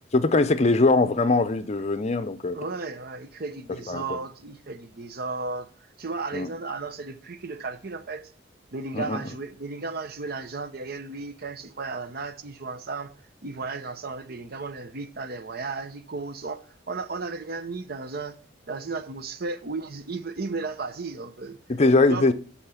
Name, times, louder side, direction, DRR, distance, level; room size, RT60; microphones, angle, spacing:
voice 1, 0.1-2.6 3.9-4.2 6.3-6.5 8.9-9.2 21.7-22.3, left 3 dB, 35° left, 0.6 m, -21 dB
voice 2, 2.5-8.3 8.7-13.1 13.4-18.4 18.7-21.6 21.9-22.3, right 3 dB, 55° right, 0.8 m, -34 dB
11.5 x 4.3 x 5.7 m
head